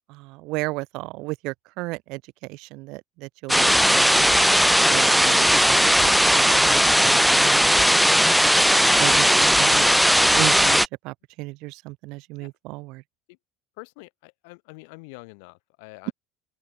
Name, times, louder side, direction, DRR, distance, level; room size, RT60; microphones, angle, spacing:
voice 1, 0.1-4.4 4.9-7.7 8.5-9.9 10.3-13.0 16.1-16.2, right 22 dB, 70° right, 0.9 m, -34 dB
sound 1, 3.5-10.9, equal, ahead, 0.3 m, -17 dB
voice 2, 13.8-16.1, left 31 dB, 75° left, 3.6 m, -45 dB
open air
hypercardioid pair, 80°, 0 cm